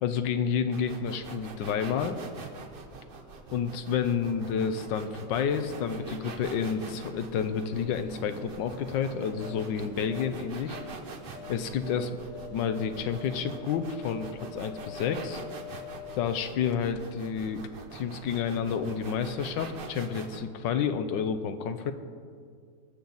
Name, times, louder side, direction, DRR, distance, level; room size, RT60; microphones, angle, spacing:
voice 1, 0.0-2.2 3.5-10.8 11.5-15.4 16.1-17.6 17.9-21.9, left 7 dB, 75° left, 9 dB, 1.2 m, -30 dB
sound 1, 0.7-20.4, right 4 dB, 70° right, 0.5 m, -44 dB
Liquid, 5.8-13.4 13.9-14.0, left 1 dB, 5° right, 2.6 m, -51 dB
sound 2, 9.1-17.3 17.6-17.7, left 10 dB, 90° left, 1.5 m, -46 dB
20.0 x 7.1 x 3.9 m, 2.1 s
omnidirectional pair, 2.2 m